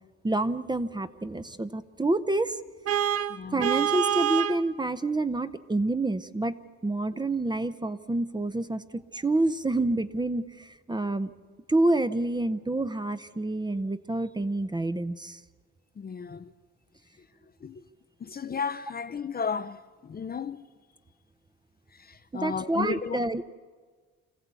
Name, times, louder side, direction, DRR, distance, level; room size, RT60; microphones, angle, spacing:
voice 1, 0.2-2.6 3.5-6.6 6.8-11.3 11.7-15.4 22.3-23.4, right 2 dB, 15° right, 0.7 m, -28 dB
Vehicle horn car horn honking, 2.9-4.6, right 9 dB, 50° right, 0.9 m, -26 dB
voice 2, 3.3-3.6 16.0-16.4 17.6-17.8 18.2-19.8 20.0-20.6 22.1-23.2, left 6 dB, 30° left, 0.6 m, -33 dB
26.0 x 15.0 x 8.3 m
cardioid pair, 90°, 30 cm